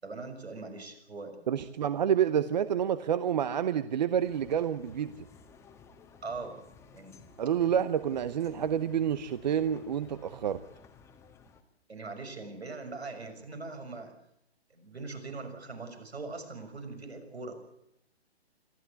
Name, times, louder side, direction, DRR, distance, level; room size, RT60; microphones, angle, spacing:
voice 1, 0.0-1.4 6.2-6.6 6.9-7.2 11.9-14.1 14.7-17.6, right 3 dB, 75° right, 6 dB, 6.3 m, -41 dB
voice 2, 1.5-5.3 7.4-10.6, right 9 dB, 45° right, 14 dB, 0.9 m, -28 dB
sound 1, 4.2-11.6, left 5 dB, 10° left, 1.4 m, -56 dB
26.0 x 14.5 x 8.2 m, 0.80 s
figure-of-eight pair, 130°, 32 cm